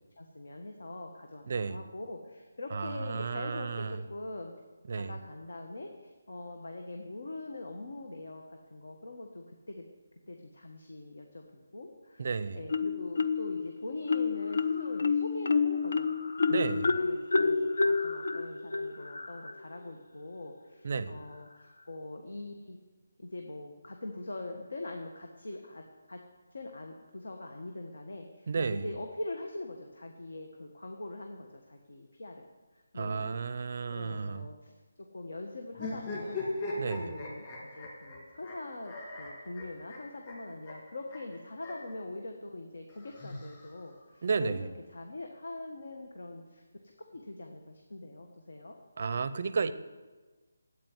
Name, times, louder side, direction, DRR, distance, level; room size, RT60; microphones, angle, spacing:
voice 1, 0.2-4.5 4.9-9.8 10.3-12.3 12.5-16.1 16.4-22.8 23.2-25.8 26.1-26.2 26.5-32.5 32.9-33.4 33.9-34.7 35.1-36.4 37.0-48.8, left 2 dB, 75° left, 3 dB, 1.5 m, -43 dB
voice 2, 1.5-1.8 2.7-4.0 4.9-5.2 12.2-12.6 16.5-16.9 20.8-21.2 28.5-28.9 32.9-34.5 36.8-37.1 44.2-44.7 49.0-49.7, right 5 dB, 35° right, 14 dB, 0.5 m, -32 dB
Marimba xylophone, 12.7-13.6 14.1-19.6, left 4 dB, 55° left, 0.6 m, -29 dB
sound 1, 35.7-41.9 42.9-44.0, left 2 dB, 20° left, 2.0 m, -39 dB
8.7 x 8.6 x 9.5 m, 1.3 s
hypercardioid pair, 180°, 0 cm